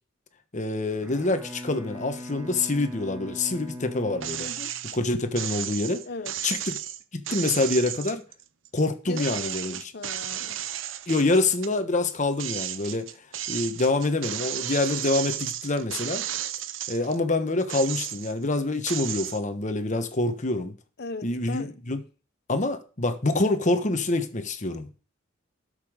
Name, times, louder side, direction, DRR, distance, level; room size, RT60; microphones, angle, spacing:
voice 1, 0.5-4.5 4.9-6.0 6.4-6.7 7.1-8.2 8.7-9.8 11.1-13.1 13.5-16.2 16.9-20.7 21.2-22.0 22.5-25.0, left 2 dB, 40° left, 1.3 m, -26 dB
Bowed string instrument, 1.0-5.3, left 1 dB, 15° right, 1.8 m, -41 dB
sound 1, 4.2-5.0 5.4-8.8 9.2-11.7 12.1-17.2 17.6-18.4 18.9-19.4, right 11 dB, 70° right, 0.7 m, -33 dB
voice 2, 4.4-4.7 6.1-6.4 9.1-10.6 21.0-21.7, left 3 dB, 55° left, 1.0 m, -38 dB
12.5 x 6.8 x 5.0 m
head